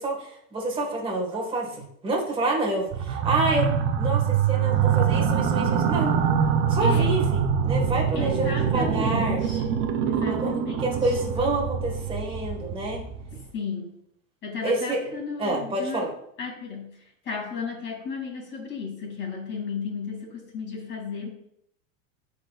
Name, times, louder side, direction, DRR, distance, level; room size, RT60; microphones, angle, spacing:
voice 1, 0.0-6.2 6.7-9.4 10.4-10.5 10.8-13.0 14.6-16.1, right 2 dB, 15° right, -1 dB, 1.4 m, -28 dB
sound 1, 2.9-13.4, right 7 dB, 30° right, 0.5 m, -24 dB
voice 2, 6.8-7.2 8.1-9.6 10.0-11.2 13.3-14.0 14.4-16.1 16.4-21.3, left 5 dB, 30° left, -1 dB, 2.3 m, -34 dB
10.0 x 4.1 x 2.3 m, 0.73 s
supercardioid pair, 140°, 40 cm